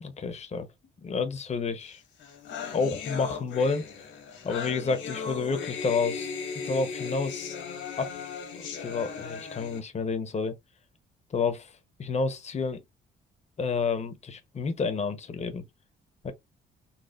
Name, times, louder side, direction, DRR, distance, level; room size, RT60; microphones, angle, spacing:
voice 1, 0.0-0.7 1.0-2.0 2.7-3.8 4.4-6.3 6.6-7.5 8.0-8.1 8.6-10.5 11.3-11.7 12.0-12.8 13.6-15.6 16.2-16.3, left 4 dB, 35° left, 0.8 m, -29 dB
sound 1, 1.9-2.0 2.2-9.8, left 5 dB, 80° left, 1.5 m, -37 dB
4.1 x 2.4 x 2.4 m
cardioid pair, 90°, 20 cm